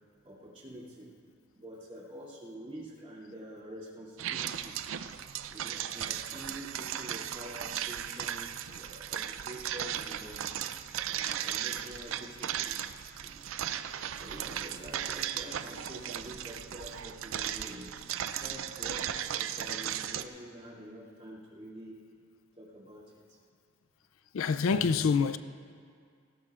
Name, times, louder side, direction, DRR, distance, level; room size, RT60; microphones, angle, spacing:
voice 1, 0.2-1.1 1.5-4.8 5.5-10.5 11.1-12.8 13.2-13.5 14.2-18.1 18.4-22.0 22.6-23.0, equal, 30° right, 2.7 m, -47 dB
sound 1, 4.2-20.2, right 10 dB, 70° right, 0.4 m, -36 dB
voice 2, 24.3-25.4, left 5 dB, 75° left, 0.4 m, -26 dB
18.5 x 16.5 x 2.5 m
head